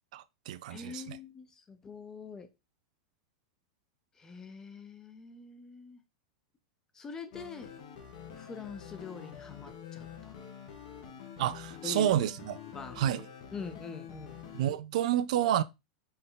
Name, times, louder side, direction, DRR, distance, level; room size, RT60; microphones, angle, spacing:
voice 1, 0.1-1.2 11.4-12.6 13.0-13.2 14.5-15.6, right 11 dB, 65° right, 0.4 m, -29 dB
voice 2, 0.7-2.5 4.2-6.0 6.9-7.7 8.4-10.3 11.8-12.1 12.7-13.1 13.5-14.4, left 5 dB, 15° left, 0.5 m, -44 dB
sound 1, 7.3-14.7, left 8 dB, 60° left, 1.0 m, -47 dB
4.1 x 3.3 x 3.8 m
supercardioid pair, 165°, 4 cm